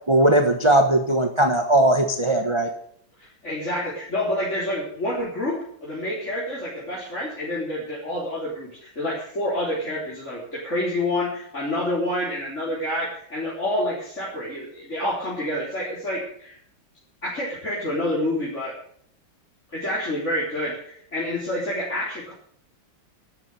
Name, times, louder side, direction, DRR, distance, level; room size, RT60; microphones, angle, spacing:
voice 1, 0.1-2.7, right 1 dB, 20° right, 5 dB, 0.9 m, -19 dB
voice 2, 3.2-16.6 17.2-18.7 19.7-22.3, left 1 dB, 35° left, -6 dB, 4.4 m, -28 dB
12.5 x 9.1 x 9.0 m, 0.63 s
omnidirectional pair, 2.2 m